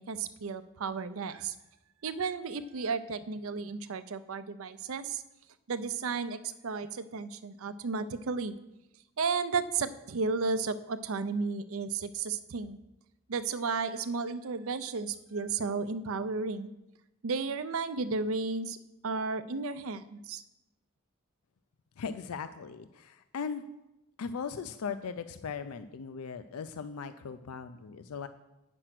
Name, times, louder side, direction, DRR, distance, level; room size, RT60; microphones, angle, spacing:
voice 1, 0.0-1.5 2.0-5.2 5.7-8.5 9.2-12.8 13.3-16.7 17.2-18.8 19.0-20.4, right 4 dB, 75° right, 13 dB, 0.5 m, -33 dB
voice 2, 22.0-23.6 24.2-28.3, left 6 dB, 90° left, 10 dB, 0.4 m, -38 dB
9.0 x 6.1 x 5.9 m, 0.94 s
head